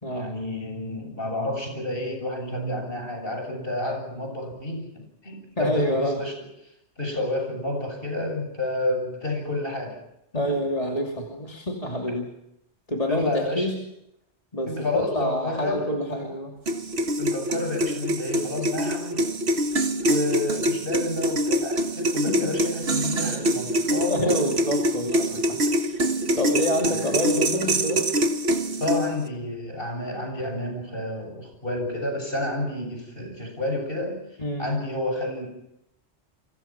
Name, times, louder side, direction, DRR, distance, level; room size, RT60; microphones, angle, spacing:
voice 1, 0.1-6.4 7.0-10.0 10.3-10.6 13.1-13.7 14.7-16.3 17.2-19.3 20.0-24.4 26.9-27.1 28.8-34.2 34.6-35.5, left 2 dB, 50° left, 3 dB, 7.6 m, -30 dB
voice 2, 5.6-6.2 10.3-12.3 12.9-13.7 14.5-16.5 22.3-22.5 24.1-26.1 26.3-28.1 34.4-34.7, equal, 30° left, 0 dB, 2.9 m, -27 dB
sound 1, 16.7-29.3, right 1 dB, 65° right, 1.8 m, -25 dB
29.5 x 24.5 x 6.0 m, 0.83 s
omnidirectional pair, 1.2 m